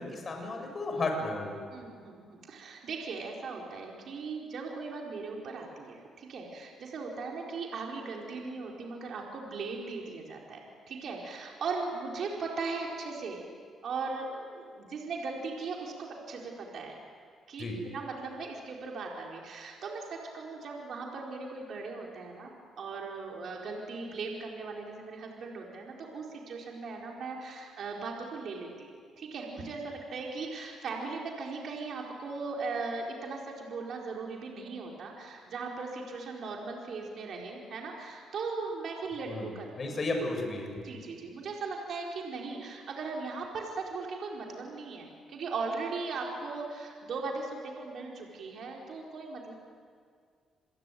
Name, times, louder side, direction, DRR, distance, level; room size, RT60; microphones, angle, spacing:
voice 1, 0.0-1.5 17.6-17.8 39.3-39.5 39.8-40.8, left 2 dB, 40° left, 3 dB, 7.5 m, -33 dB
voice 2, 1.7-10.6 10.9-13.4 13.8-17.0 17.5-22.5 22.8-28.9 29.2-40.0 40.8-49.5, right 4 dB, 60° right, -1 dB, 4.6 m, -38 dB
28.0 x 21.5 x 9.3 m, 2.1 s
cardioid pair, 90°, 0 cm